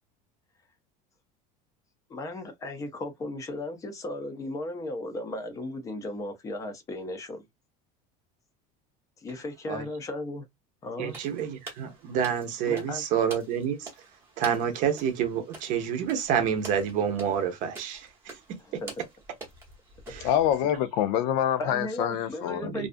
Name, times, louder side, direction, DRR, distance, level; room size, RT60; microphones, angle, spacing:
voice 1, 2.1-7.4 9.2-10.4 10.8-11.2 12.7-13.0 18.6-18.9 21.6-22.9, left 2 dB, 15° left, 0.5 m, -36 dB
voice 2, 11.0-13.9 14.4-18.4 20.1-20.3 22.6-22.9, right 8 dB, 45° right, 0.6 m, -28 dB
sound 1, 11.1-20.8, right 3 dB, 15° right, 0.8 m, -47 dB
voice 3, 20.2-22.7, left 10 dB, 80° left, 0.5 m, -26 dB
2.5 x 2.3 x 2.4 m
cardioid pair, 175°, 19 cm